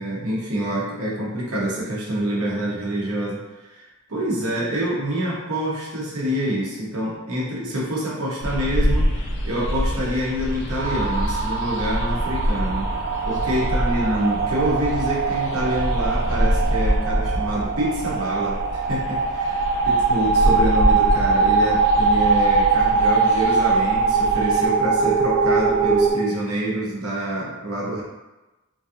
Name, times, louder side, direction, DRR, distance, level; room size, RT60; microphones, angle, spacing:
voice 1, 0.0-12.9 13.3-28.0, right 1 dB, 75° right, -5 dB, 0.9 m, -26 dB
sound 1, 8.4-24.7, equal, 55° left, 0.4 m, -26 dB
sound 2, 10.8-26.1, right 4 dB, 45° right, 0.3 m, -22 dB
3.1 x 2.6 x 2.5 m, 1.1 s
head